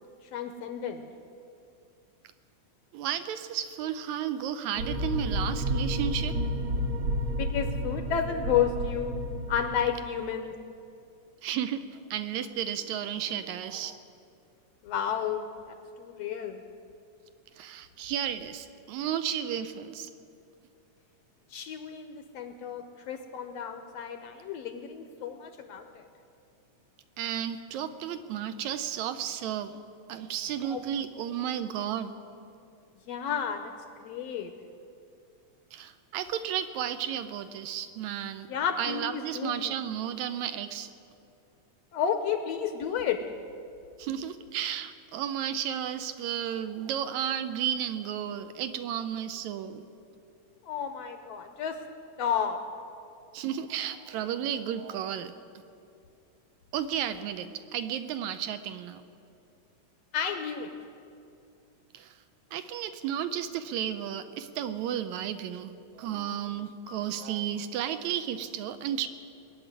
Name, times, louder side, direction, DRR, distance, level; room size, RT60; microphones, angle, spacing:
voice 1, 0.2-1.1 7.3-9.2 9.5-10.6 14.8-16.6 21.5-26.1 30.6-30.8 33.1-33.7 34.0-34.5 38.5-39.7 41.9-43.2 50.6-51.8 52.2-52.6 60.1-60.7 66.9-67.0, left 8 dB, 75° left, 7 dB, 1.6 m, -32 dB
voice 2, 2.9-6.3 11.4-11.8 12.1-14.0 17.6-20.1 27.2-29.8 30.1-32.1 35.7-38.5 38.8-40.9 44.0-49.8 53.3-55.3 56.7-59.0 61.9-62.1 62.5-69.1, right 9 dB, 80° right, 10 dB, 1.9 m, -33 dB
sound 1, 4.7-9.8, equal, 60° right, 2.7 m, -31 dB
20.5 x 7.2 x 9.5 m, 2.5 s
omnidirectional pair, 3.4 m